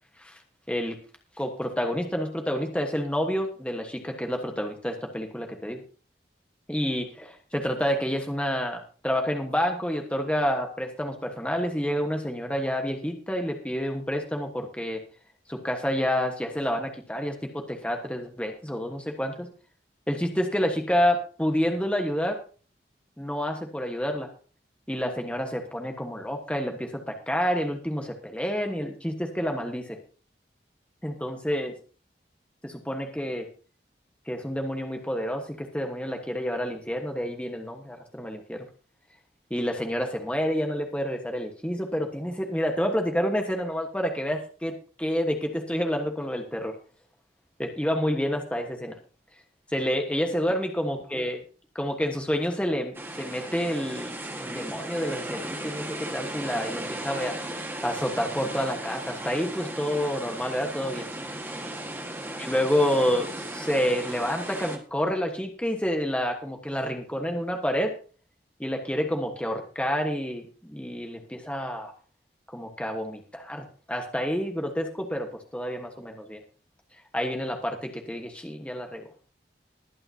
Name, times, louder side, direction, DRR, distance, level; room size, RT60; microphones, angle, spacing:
voice 1, 1.4-5.8 6.7-15.0 15.5-19.5 20.1-22.4 23.2-24.3 24.9-30.0 31.0-31.8 32.6-33.5 34.3-38.7 39.5-46.7 47.6-49.0 49.7-51.4 51.7-57.5 57.8-61.1 62.4-67.9 68.6-71.9 72.5-76.4 77.1-79.1, equal, 5° left, 3 dB, 1.2 m, -29 dB
sound 1, 52.9-64.8, right 1 dB, 10° right, 1.5 m, -36 dB
20.5 x 8.9 x 2.8 m, 0.39 s
head